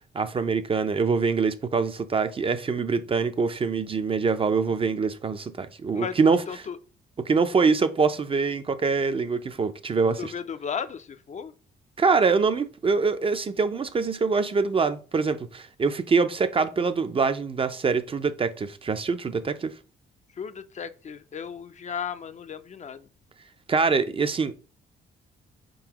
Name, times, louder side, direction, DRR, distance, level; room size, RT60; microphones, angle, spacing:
voice 1, 0.1-6.4 7.3-10.3 12.0-19.7 23.7-24.7, right 4 dB, 30° right, 0.4 m, -24 dB
voice 2, 6.5-6.8 10.2-11.5 20.4-23.1, left 7 dB, 35° left, 0.4 m, -35 dB
4.2 x 3.8 x 2.9 m
cardioid pair, 90°, 20 cm